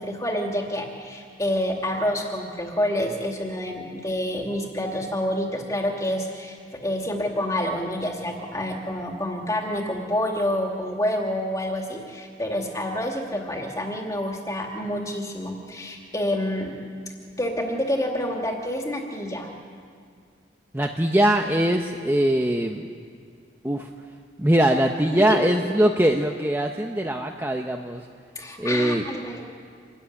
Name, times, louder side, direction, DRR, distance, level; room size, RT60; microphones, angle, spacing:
voice 1, 0.0-16.8 17.4-19.5 25.3-25.5 28.4-29.4, left 1 dB, 15° left, 1 dB, 2.5 m, -28 dB
voice 2, 20.7-22.8 23.6-23.9 24.4-28.1 28.6-29.0, right 1 dB, 10° right, 3 dB, 0.8 m, -22 dB
26.5 x 14.5 x 9.9 m, 2.1 s
head